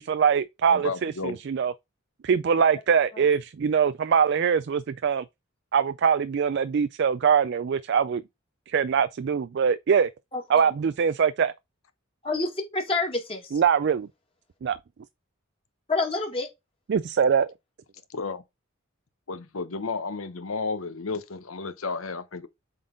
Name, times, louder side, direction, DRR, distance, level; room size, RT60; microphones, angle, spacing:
voice 1, 0.0-1.7 2.2-5.2 5.7-8.2 8.7-10.1 10.5-11.5 13.5-14.1 14.6-14.8 16.9-17.5, right 7 dB, 55° right, 0.3 m, -23 dB
voice 2, 0.7-1.4 18.1-18.4 19.3-22.5, left 4 dB, 85° left, 0.9 m, -32 dB
voice 3, 10.3-10.7 12.2-13.6 15.9-16.5, left 3 dB, 25° left, 1.9 m, -28 dB
7.4 x 3.9 x 3.8 m
head